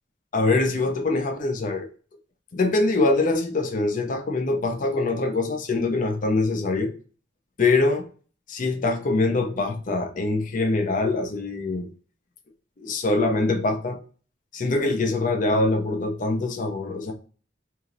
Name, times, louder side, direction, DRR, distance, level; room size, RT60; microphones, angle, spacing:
voice 1, 0.3-1.9 2.5-6.9 7.6-8.1 8.5-11.9 12.8-14.0 14.5-17.1, left 3 dB, 45° left, 0.5 m, -23 dB
2.9 x 2.7 x 3.7 m
head